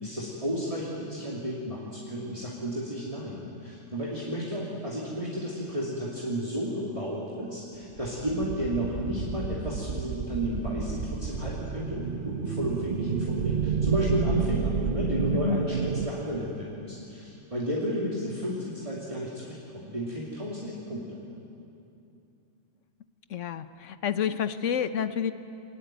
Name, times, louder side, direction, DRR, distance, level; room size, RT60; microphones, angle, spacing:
voice 1, 0.0-21.2, equal, 25° right, -5 dB, 2.9 m, -32 dB
sound 1, 7.9-16.1, right 6 dB, 50° right, 1.0 m, -30 dB
voice 2, 15.3-15.6 23.3-25.3, left 8 dB, 75° left, 12 dB, 1.2 m, -29 dB
24.5 x 20.0 x 9.1 m, 2.7 s
omnidirectional pair, 1.3 m